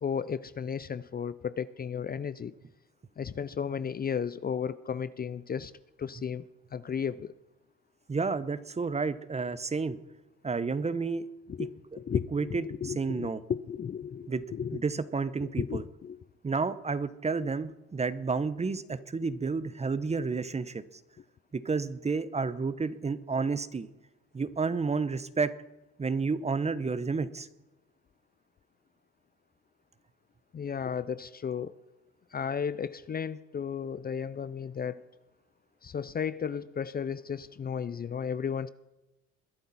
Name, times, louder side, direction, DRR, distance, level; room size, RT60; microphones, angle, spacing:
voice 1, 0.0-2.5 3.2-5.7 6.0-6.4 6.7-7.3 11.5-11.7 12.0-13.3 13.7-14.8 15.4-16.2 30.5-31.7 32.3-35.0 35.8-38.7, left 7 dB, 30° left, 16 dB, 0.6 m, -34 dB
voice 2, 8.1-10.0 10.4-11.3 12.3-13.4 14.3-14.4 14.7-15.8 16.4-20.8 21.5-23.9 24.3-25.5 26.0-27.5, right 4 dB, 20° right, 15 dB, 0.9 m, -31 dB
21.5 x 11.5 x 4.2 m, 1.0 s
cardioid pair, 90°, 30 cm